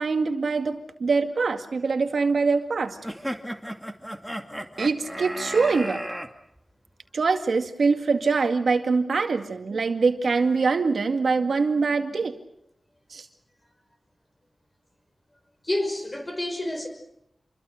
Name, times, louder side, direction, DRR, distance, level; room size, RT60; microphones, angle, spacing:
voice 1, 0.0-3.0 4.8-6.0 7.1-12.4 13.1-13.3, right 4 dB, 75° right, 6 dB, 2.0 m, -24 dB
sound 1, 3.0-6.3, equal, ahead, 2.3 m, -34 dB
voice 2, 15.6-16.9, left 1 dB, 20° left, 6 dB, 5.7 m, -28 dB
28.0 x 23.0 x 6.5 m, 0.81 s
wide cardioid pair, 110°, 0 cm